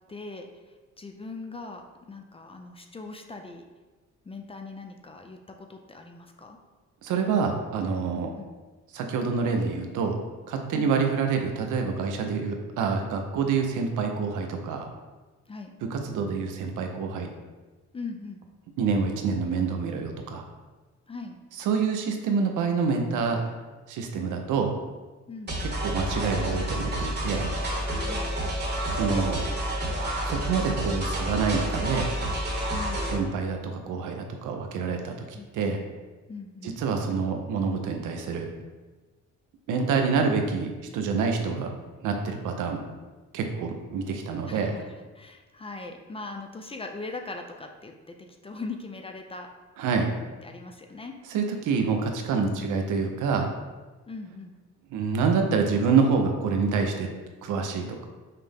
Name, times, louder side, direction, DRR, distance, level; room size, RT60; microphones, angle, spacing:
voice 1, 0.1-0.5 1.0-3.6 4.3-6.6 8.1-8.4 10.7-11.0 15.5-15.7 17.9-18.4 21.1-21.4 25.3-25.5 28.0-28.3 32.7-33.1 35.3-35.8 36.3-36.8 44.4-44.9 45.1-48.2 48.4-49.5 50.4-51.1 52.3-52.7 54.1-54.5, left 3 dB, 20° left, 4 dB, 0.4 m, -40 dB
voice 2, 7.0-8.3 8.9-10.2 10.5-14.9 15.8-17.3 18.8-20.4 21.6-23.5 23.9-24.7 25.6-27.5 28.9-29.4 30.2-32.1 33.1-35.2 35.5-35.8 36.6-38.5 39.7-41.7 42.0-42.8 43.3-44.7 49.8-50.1 51.3-53.5 54.9-57.1 57.4-58.0, right 5 dB, 80° right, 4 dB, 0.6 m, -27 dB
sound 1, 25.5-33.2, right 1 dB, 35° right, 1.0 m, -29 dB
5.7 x 2.1 x 3.4 m, 1.2 s
cardioid pair, 90°, 30 cm